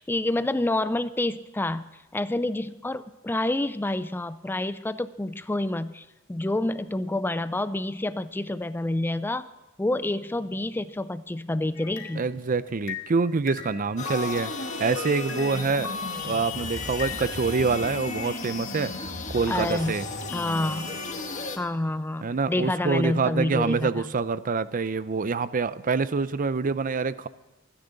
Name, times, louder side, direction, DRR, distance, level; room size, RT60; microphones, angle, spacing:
voice 1, 0.0-1.8 2.1-9.5 9.8-12.3 19.5-19.9 20.3-20.9 21.6-24.1, left 1 dB, 10° left, 14 dB, 0.4 m, -28 dB
sound 1, 11.7-13.2 13.5-17.8, left 5 dB, 80° left, 3.6 m, -39 dB
voice 2, 12.1-14.5 14.8-15.9 16.2-20.0 22.2-27.3, right 4 dB, 40° right, 15 dB, 0.5 m, -26 dB
sound 2, 14.0-21.6, left 3 dB, 35° left, 1.7 m, -34 dB
24.5 x 10.0 x 4.0 m, 1.1 s
head